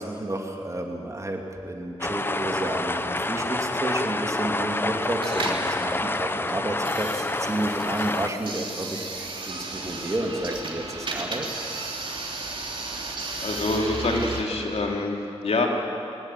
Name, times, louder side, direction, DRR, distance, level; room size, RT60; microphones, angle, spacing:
voice 1, 0.0-11.5, right 1 dB, 30° right, 2 dB, 2.9 m, -31 dB
sound 1, 2.0-8.3, left 2 dB, 20° left, 0.8 m, -28 dB
sound 2, 5.1-14.4, right 3 dB, 50° right, 3.3 m, -34 dB
voice 2, 13.4-15.7, left 2 dB, 80° left, 1 dB, 3.2 m, -26 dB
22.0 x 20.0 x 9.3 m, 2.7 s
wide cardioid pair, 105°, 11 cm